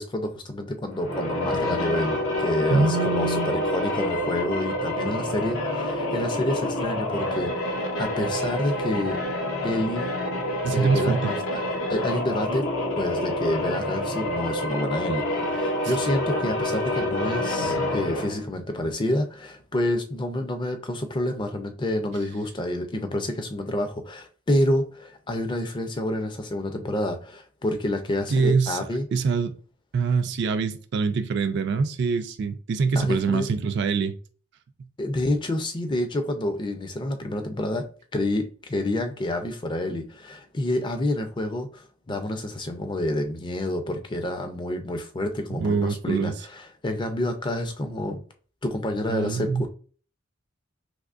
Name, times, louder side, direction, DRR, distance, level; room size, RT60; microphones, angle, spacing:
voice 1, 0.0-9.2 9.6-10.1 10.7-11.6 11.9-12.7 13.0-29.1 33.0-33.5 35.0-37.9 38.1-48.2 48.6-49.7, left 1 dB, 20° left, 0.4 m, -28 dB
sound 1, 0.9-18.4, left 1 dB, 80° left, 0.8 m, -27 dB
voice 2, 2.7-3.5 10.6-11.3 28.3-28.8 29.1-29.6 29.9-34.1 45.5-46.3 49.1-49.6, right 4 dB, 55° right, 0.3 m, -24 dB
3.5 x 2.9 x 2.5 m
head